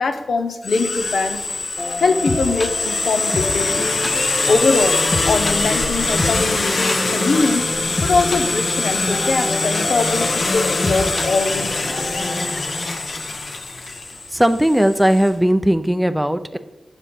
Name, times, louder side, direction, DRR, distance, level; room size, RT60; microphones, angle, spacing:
voice 1, 0.0-1.4 2.0-4.0 4.5-7.7 8.0-12.2, left 3 dB, 80° left, 7 dB, 0.8 m, -22 dB
sound 1, 0.6-15.3, left 3 dB, 60° left, 1.1 m, -23 dB
sound 2, 1.8-12.6, left 2 dB, 35° left, 0.7 m, -28 dB
voice 2, 14.3-16.6, equal, 5° right, 10 dB, 0.5 m, -17 dB
8.8 x 7.1 x 4.3 m, 1.1 s
wide cardioid pair, 85°, 0 cm